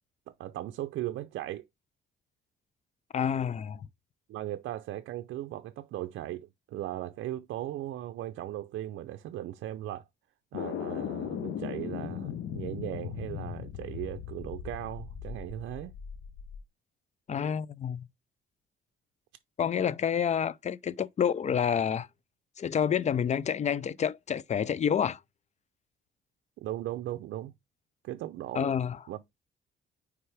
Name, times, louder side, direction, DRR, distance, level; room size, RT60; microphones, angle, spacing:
voice 1, 0.4-1.6 4.3-10.0 10.5-15.9 26.6-27.5 28.0-28.7 29.1-29.2, right 14 dB, 75° right, 0.5 m, -37 dB
voice 2, 3.1-3.9 17.3-18.1 19.6-22.1 22.6-25.2 28.5-29.0, left 8 dB, 35° left, 0.4 m, -28 dB
sound 1, 10.5-16.6, left 9 dB, 70° left, 0.7 m, -38 dB
9.3 x 3.4 x 3.3 m
cardioid pair, 90°, 20 cm